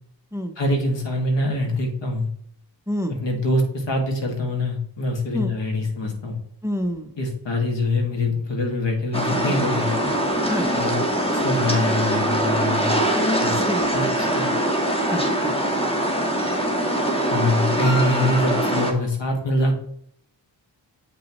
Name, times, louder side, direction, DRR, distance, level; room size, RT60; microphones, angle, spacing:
voice 1, 0.6-2.3 3.1-6.4 7.2-9.9 10.7-10.9 11.3-13.0 13.4-13.6 13.9-14.5 17.3-19.7, left 1 dB, 75° left, 2 dB, 2.0 m, -24 dB
voice 2, 6.6-7.1 10.5-10.7 13.5-14.0 15.0-15.6, equal, 5° right, 7 dB, 0.7 m, -28 dB
sound 1, 9.1-18.9, right 1 dB, 15° left, 1.4 m, -22 dB
8.1 x 5.9 x 3.1 m, 0.67 s
wide cardioid pair, 85°, 44 cm